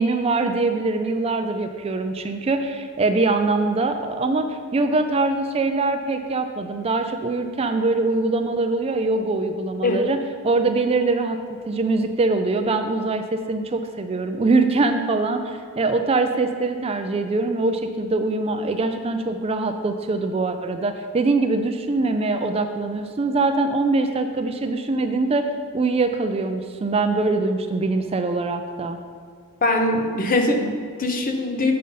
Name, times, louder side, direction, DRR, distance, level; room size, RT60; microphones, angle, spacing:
voice 1, 0.0-11.4 11.7-25.5 25.7-29.0, right 3 dB, 25° right, 7 dB, 0.4 m, -23 dB
voice 2, 29.6-31.7, left 2 dB, 40° left, 3 dB, 0.9 m, -22 dB
7.5 x 5.5 x 5.4 m, 2.1 s
head